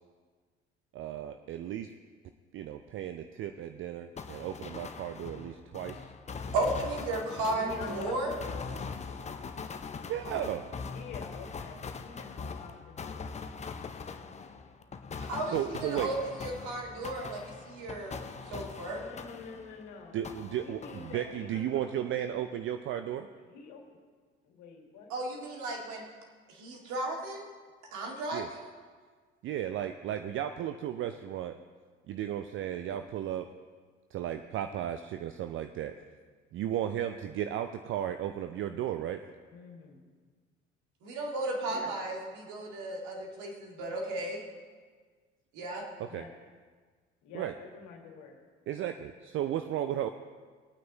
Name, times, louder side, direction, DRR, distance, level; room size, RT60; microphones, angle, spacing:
voice 1, 0.9-1.9 2.5-6.1 10.1-10.7 15.5-16.1 20.1-23.3 28.3-28.5 29.4-31.6 32.1-33.5 34.1-35.9 36.5-39.2 46.1-46.2 47.3-47.5 48.7-50.1, right 10 dB, 35° right, 8 dB, 0.5 m, -34 dB
sound 1, 4.2-19.9 20.2-21.6, left 5 dB, 20° left, 0.7 m, -42 dB
voice 2, 6.5-8.3 15.2-15.6 15.8-19.0 25.1-26.0 26.6-27.4 27.9-28.7 41.0-44.4 45.5-45.8, right 2 dB, 55° right, 0 dB, 2.2 m, -34 dB
voice 3, 7.5-8.7 10.9-13.3 18.9-20.2 20.6-21.9 23.4-23.8 24.4-25.7 39.5-40.0 41.7-41.9 46.1-46.3 47.2-48.4, left 4 dB, 55° left, 1 dB, 2.2 m, -46 dB
20.0 x 9.3 x 3.0 m, 1.5 s
figure-of-eight pair, 60°, 35 cm